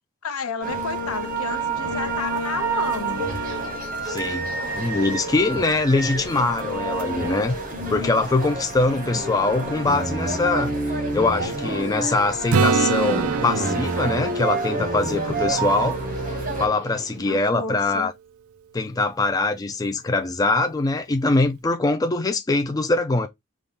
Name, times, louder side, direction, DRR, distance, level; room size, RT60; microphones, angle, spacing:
voice 1, 0.2-3.2 8.9-9.2 17.2-18.1, left 4 dB, 75° left, 0.8 m, -32 dB
sound 1, 0.6-16.7, right 2 dB, 35° right, 1.0 m, -28 dB
voice 2, 4.0-4.5 4.7-7.6 7.9-16.0 16.6-18.1 18.7-23.3, left 3 dB, 15° left, 0.3 m, -23 dB
Subway metro underground, 8.1-17.2, left 1 dB, 15° right, 2.1 m, -46 dB
Acoustic guitar / Strum, 12.5-16.3 21.1-21.2, right 6 dB, 70° right, 0.5 m, -26 dB
5.4 x 2.4 x 3.6 m
head